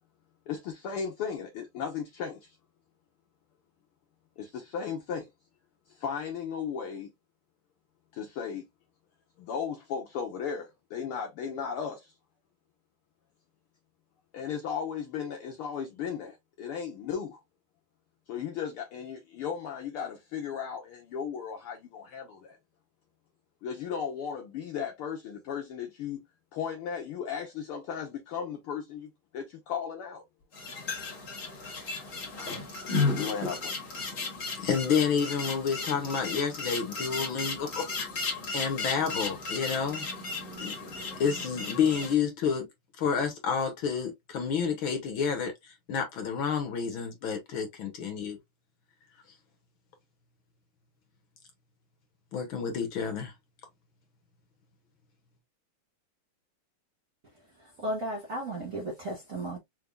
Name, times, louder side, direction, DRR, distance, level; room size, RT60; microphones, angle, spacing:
voice 1, 0.5-2.6 4.4-5.3 5.9-7.1 8.1-8.7 9.4-12.1 14.3-17.4 18.3-22.6 23.6-26.3 26.5-30.2 33.1-33.8, left 7 dB, 80° left, 1.2 m, -36 dB
sound 1, 30.5-42.1, left 3 dB, 35° left, 1.4 m, -34 dB
voice 2, 34.6-40.1 40.6-40.7 41.2-42.7 43.0-48.4 52.3-53.3, left 6 dB, 65° left, 1.3 m, -30 dB
voice 3, 57.3-59.6, right 1 dB, 80° right, 0.7 m, -35 dB
4.7 x 3.4 x 2.3 m
omnidirectional pair, 3.4 m